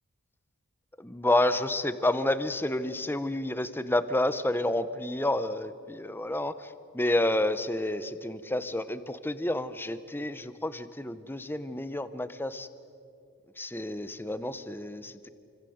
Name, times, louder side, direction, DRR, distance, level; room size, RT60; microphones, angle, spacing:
voice 1, 1.0-12.7 13.6-15.3, left 1 dB, 10° left, 12 dB, 1.0 m, -29 dB
28.5 x 25.0 x 8.0 m, 2.5 s
head